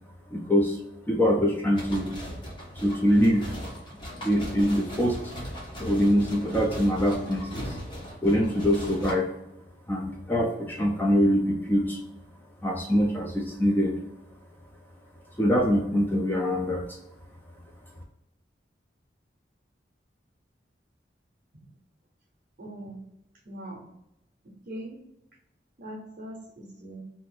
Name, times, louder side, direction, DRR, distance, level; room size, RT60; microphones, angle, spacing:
voice 1, 0.3-0.8 1.1-2.1 2.8-3.5 4.2-5.3 5.8-7.7 8.2-9.3 9.9-12.0 12.6-14.0 15.4-17.0, equal, 10° left, 0 dB, 0.3 m, -24 dB
sound 1, 1.7-9.1, equal, 25° left, 0.8 m, -38 dB
voice 2, 22.6-23.0 23.5-23.9 24.4-25.0 25.8-27.0, right 1 dB, 55° right, -2 dB, 0.6 m, -41 dB
2.6 x 2.4 x 3.7 m, 0.85 s
head